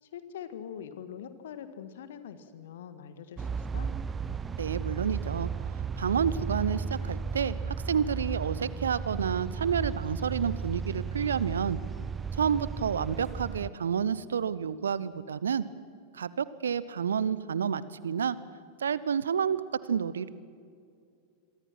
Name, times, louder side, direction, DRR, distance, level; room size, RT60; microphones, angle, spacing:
voice 1, 0.0-3.9, left 8 dB, 60° left, 11 dB, 1.6 m, -43 dB
sound 1, 3.4-13.7, right 6 dB, 20° right, 0.7 m, -34 dB
voice 2, 4.6-5.5 6.0-11.8 12.4-15.6 16.1-18.4 18.8-20.3, right 7 dB, 70° right, 18 dB, 0.9 m, -29 dB
27.5 x 23.5 x 6.1 m, 2.4 s
figure-of-eight pair, 90°, 0 cm